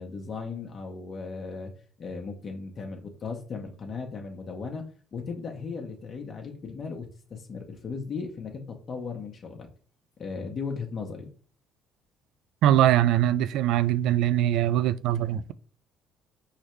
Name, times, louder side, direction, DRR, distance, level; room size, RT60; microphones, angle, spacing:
voice 1, 0.0-1.7 2.0-4.8 5.1-9.7 10.2-11.3, left 4 dB, 45° left, 1.0 m, -36 dB
voice 2, 12.6-15.5, right 12 dB, 75° right, 0.3 m, -22 dB
4.7 x 3.3 x 3.1 m
supercardioid pair, 70°, 0 cm